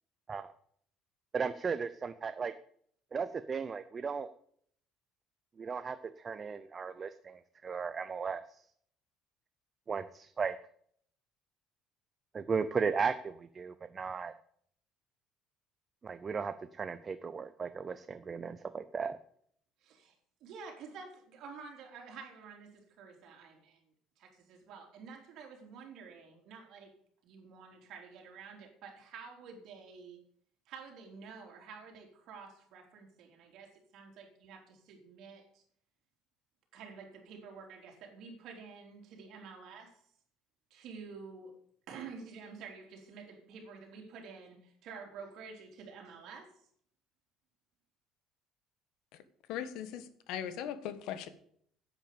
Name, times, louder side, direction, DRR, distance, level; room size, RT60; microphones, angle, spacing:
voice 1, 1.3-2.5 3.1-4.3 5.6-8.4 9.9-10.5 12.3-14.3 16.0-19.2, right 5 dB, 25° right, 11 dB, 0.6 m, -36 dB
voice 2, 19.8-20.2 20.4-23.8 24.2-26.9 27.2-30.3 30.7-35.6 36.7-40.0 40.7-41.6 41.9-46.5, right 5 dB, 60° right, 2 dB, 3.8 m, -49 dB
voice 3, 49.5-51.3, left 9 dB, 70° left, 12 dB, 1.4 m, -39 dB
10.5 x 8.7 x 7.0 m, 0.64 s
cardioid pair, 145°, 0 cm